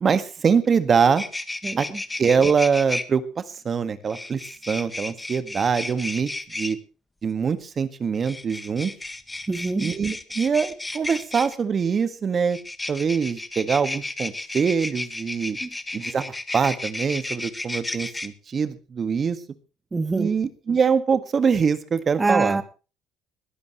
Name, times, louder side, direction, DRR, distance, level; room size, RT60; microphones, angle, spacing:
voice 1, 0.0-1.2 1.8-1.9 2.2-4.4 4.7-6.3 6.5-6.8 7.2-8.9 9.8-12.6 12.9-15.6 15.9-19.4 20.1-22.6, right 6 dB, 35° right, 11 dB, 1.7 m, -23 dB
sound 1, 0.6-0.7 1.0-3.0 4.1-6.7 8.2-11.6 12.5-18.3, left 2 dB, 10° left, 1.6 m, -33 dB
voice 2, 1.6-2.0 9.5-9.9 15.6-15.7 19.9-20.3 22.2-22.6, right 3 dB, 20° right, 10 dB, 1.6 m, -25 dB
21.5 x 15.5 x 3.1 m, 0.35 s
cardioid pair, 100°, 0 cm